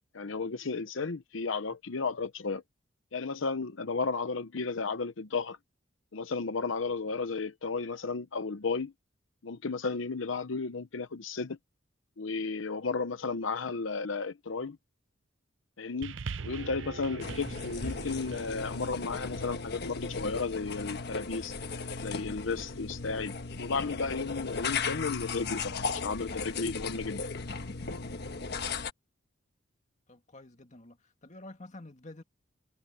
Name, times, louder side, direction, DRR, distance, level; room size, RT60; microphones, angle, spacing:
voice 1, 0.1-2.6 3.1-5.6 6.1-8.9 9.4-11.6 12.2-14.8 15.8-16.1 16.4-21.5 22.0-27.2, left 4 dB, 85° left, 0.8 m, -33 dB
sound 1, 16.0-20.6 21.4-21.5, right 5 dB, 70° right, 0.6 m, -42 dB
sound 2, 17.2-28.9, left 4 dB, 60° left, 1.3 m, -36 dB
voice 2, 30.1-32.2, left 2 dB, 40° left, 2.1 m, -49 dB
head